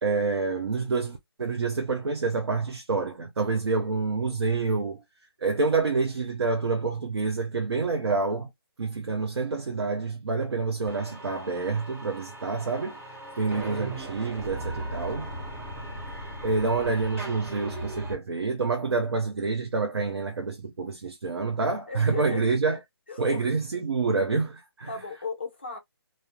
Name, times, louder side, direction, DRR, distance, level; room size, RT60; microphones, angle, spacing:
voice 1, 0.0-5.0 5.4-8.5 8.8-13.0 13.4-15.3 16.4-22.8 23.2-24.9, right 4 dB, 85° right, 0.5 m, -27 dB
sound 1, 10.9-18.1, right 1 dB, 30° right, 1.1 m, -38 dB
voice 2, 13.4-13.7 21.9-22.4 23.1-23.5 24.9-25.8, left 4 dB, 25° left, 0.4 m, -36 dB
2.3 x 2.0 x 2.7 m
hypercardioid pair, 175°, 13 cm